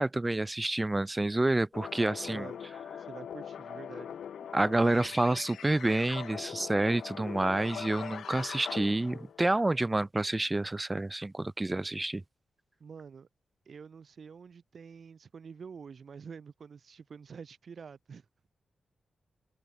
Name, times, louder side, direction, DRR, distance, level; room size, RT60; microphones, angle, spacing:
voice 1, 0.0-2.5 4.5-12.2, right 2 dB, 15° right, 1.8 m, -28 dB
sound 1, 1.7-9.4, left 8 dB, 80° left, 3.8 m, -42 dB
voice 2, 2.3-2.6 3.1-4.1 12.8-13.3 13.7-18.3, right 6 dB, 45° right, 3.5 m, -47 dB
wide cardioid pair, 170°, 0 cm